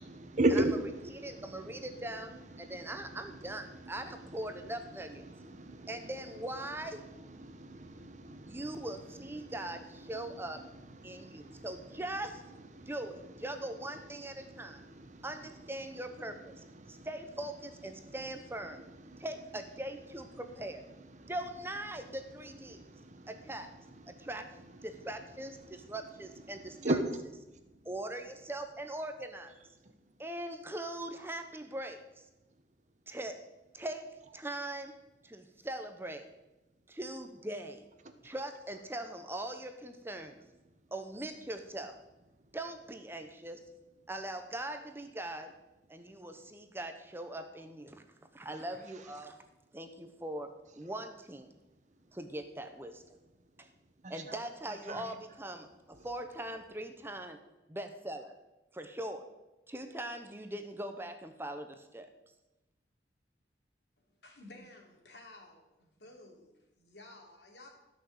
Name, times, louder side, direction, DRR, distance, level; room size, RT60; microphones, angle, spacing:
voice 1, 0.0-17.1 17.4-17.5 17.8-19.3 19.8-21.4 21.9-27.9 29.8-30.0 40.6-40.7 48.8-49.2 52.0-52.1 54.0-54.4 54.7-55.2 55.9-56.1, right 1 dB, 45° right, 1.2 m, -40 dB
voice 2, 1.2-2.3 2.6-5.2 5.9-7.0 8.5-10.6 11.0-12.5 12.9-14.8 15.2-16.5 16.9-18.8 19.2-20.8 21.3-22.8 23.3-23.7 24.1-24.5 24.8-27.0 27.8-29.5 30.2-32.0 33.1-33.5 33.7-35.0 35.2-36.3 36.9-37.8 38.2-40.4 40.9-42.0 42.5-43.6 44.1-45.5 45.9-48.0 48.3-49.4 49.7-51.6 52.1-53.1 53.6-53.7 54.1-57.4 57.7-58.3 58.7-59.3 59.7-62.1, right 1 dB, 15° right, 0.8 m, -41 dB
voice 3, 64.0-67.7, left 2 dB, 70° left, 3.3 m, -54 dB
14.0 x 6.3 x 8.0 m
head